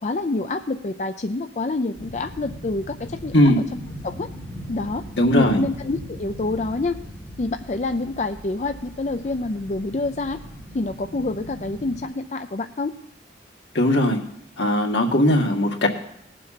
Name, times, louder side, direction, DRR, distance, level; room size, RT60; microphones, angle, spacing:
voice 1, 0.0-3.5 4.0-4.3 4.7-5.0 5.3-7.0 7.4-10.4 10.7-12.9, left 2 dB, 40° left, 7 dB, 0.5 m, -27 dB
sound 1, 1.9-12.0, equal, 10° left, 3.0 m, -39 dB
voice 2, 5.2-5.6 13.7-14.2 14.6-15.9, left 1 dB, 85° left, 2 dB, 1.8 m, -18 dB
18.5 x 7.6 x 5.7 m, 0.76 s
head